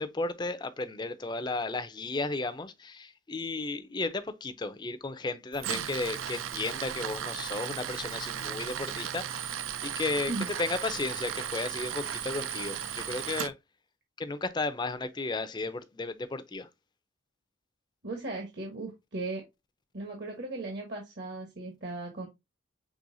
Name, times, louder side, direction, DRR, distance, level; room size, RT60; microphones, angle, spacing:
voice 1, 0.0-10.3 10.6-13.5 14.2-16.7, left 3 dB, 20° left, 0.4 m, -34 dB
Tools, 5.5-13.5, right 9 dB, 85° right, 0.5 m, -36 dB
voice 2, 18.0-19.4 19.9-22.3, right 2 dB, 55° right, 1.1 m, -37 dB
6.2 x 3.3 x 2.6 m
head